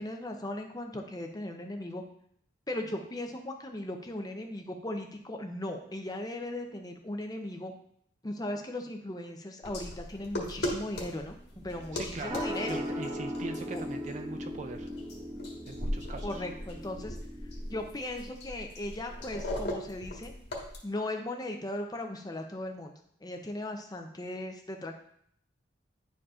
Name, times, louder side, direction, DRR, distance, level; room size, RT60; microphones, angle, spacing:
voice 1, 0.0-2.0 2.7-7.7 8.2-12.9 13.7-13.8 16.2-17.2 17.7-20.3 20.8-22.9 23.2-25.1, left 1 dB, 20° left, 4 dB, 0.6 m, -37 dB
sound 1, 9.6-20.8, left 1 dB, 60° left, 1.5 m, -39 dB
sound 2, 11.5-17.9, equal, 20° right, 0.7 m, -38 dB
voice 2, 11.9-12.4 12.7-14.9 15.7-16.4, right 3 dB, 35° right, 7 dB, 0.4 m, -41 dB
10.5 x 4.8 x 2.5 m, 0.68 s
head